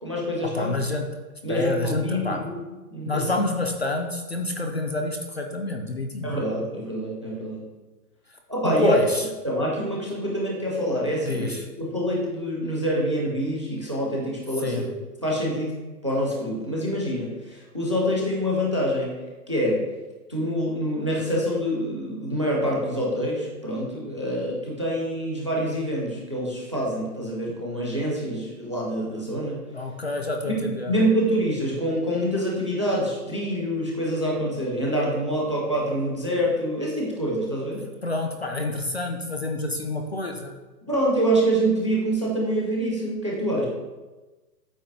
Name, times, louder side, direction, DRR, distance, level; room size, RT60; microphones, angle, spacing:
voice 1, 0.0-0.7 1.4-2.5 2.9-3.3 6.2-7.6 8.5-9.0 9.4-11.5 11.8-14.8 15.2-15.8 16.0-19.2 19.5-19.8 20.3-29.6 30.4-37.8 40.8-43.7, equal, 20° right, -3 dB, 0.5 m, -26 dB
voice 2, 0.5-1.0 1.5-2.4 3.1-6.4 8.6-9.2 11.2-11.6 14.6-14.9 29.7-30.9 38.0-40.5, left 2 dB, 40° left, 3 dB, 0.5 m, -27 dB
8.5 x 2.9 x 5.7 m, 1.2 s
hypercardioid pair, 180°, 49 cm